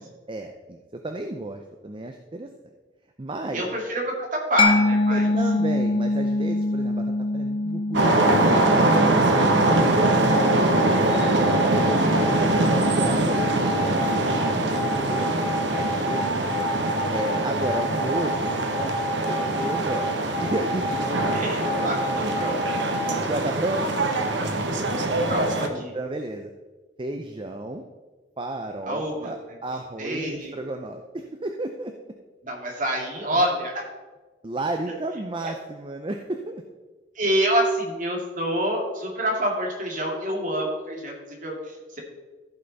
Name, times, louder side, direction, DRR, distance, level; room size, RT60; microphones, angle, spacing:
voice 1, 0.0-2.5 3.2-3.6 5.1-9.0 10.9-12.4 12.7-16.4 17.1-20.1 20.4-21.4 22.8-23.9 25.7-26.5 27.0-27.8 28.4-31.9 33.3-33.4 34.4-36.6, right 2 dB, 25° right, 5 dB, 0.5 m, -33 dB
voice 2, 3.5-5.3 10.0-10.6 21.0-22.6 24.9-25.9 28.8-29.3 30.0-30.6 32.4-33.8 35.4-35.5 37.2-42.0, right 1 dB, 45° right, 0 dB, 2.2 m, -27 dB
Mallet percussion, 4.6-12.0, left 2 dB, 25° left, 0.5 m, -25 dB
sound 1, 7.9-25.7, right 2 dB, 70° right, 1.0 m, -23 dB
sound 2, 8.0-23.2, left 2 dB, 45° left, 1.7 m, -30 dB
14.5 x 5.6 x 4.1 m, 1.2 s
head